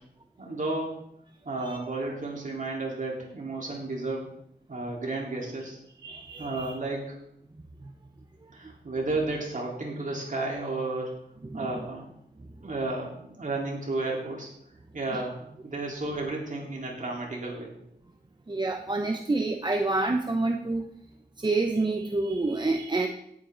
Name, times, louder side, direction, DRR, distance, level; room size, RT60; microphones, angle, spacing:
voice 1, 0.4-1.0 1.4-4.3 4.7-5.8 6.4-7.2 8.5-11.2 11.5-12.1 12.6-14.5 14.9-17.7, right 2 dB, 45° right, -2 dB, 3.9 m, -32 dB
voice 2, 6.0-6.8 7.8-7.9 8.4-8.7 11.5-11.7 15.1-15.2 18.5-20.9 21.4-23.1, right 2 dB, 25° right, 4 dB, 0.9 m, -28 dB
17.5 x 9.2 x 4.0 m, 0.77 s
wide cardioid pair, 125°, 18 cm